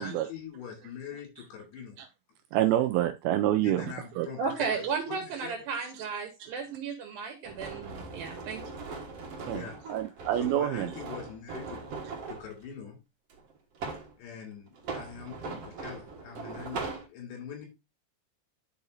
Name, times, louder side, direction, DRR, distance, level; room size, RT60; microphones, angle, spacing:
voice 1, 0.0-2.0 3.6-5.5 9.4-11.8 12.3-13.0 14.2-17.7, left 7 dB, 80° left, 4.5 m, -43 dB
voice 2, 2.5-3.9 4.2-4.3 9.5-9.6 9.9-10.9, right 13 dB, 85° right, 2.1 m, -26 dB
voice 3, 4.4-8.6, right 5 dB, 70° right, 2.7 m, -34 dB
sound 1, 7.4-12.5 13.3-14.1 14.7-17.1, right 4 dB, 55° right, 1.8 m, -40 dB
11.5 x 4.8 x 2.7 m
omnidirectional pair, 4.8 m